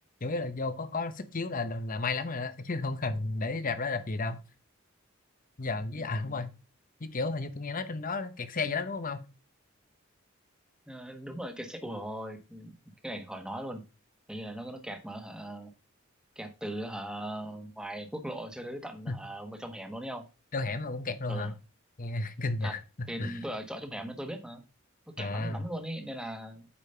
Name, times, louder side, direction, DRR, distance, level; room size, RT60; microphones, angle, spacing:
voice 1, 0.2-4.4 5.6-6.5 7.0-9.2 19.1-19.2 20.5-21.5 22.0-23.4 25.2-25.6, left 3 dB, 45° left, 0.9 m, -33 dB
voice 2, 5.9-6.4 10.9-12.7 13.0-13.8 14.3-15.7 16.3-20.3 21.3-21.5 22.6-22.7 23.1-24.6 25.1-26.7, right 1 dB, 5° right, 1.4 m, -39 dB
8.7 x 5.2 x 5.6 m
head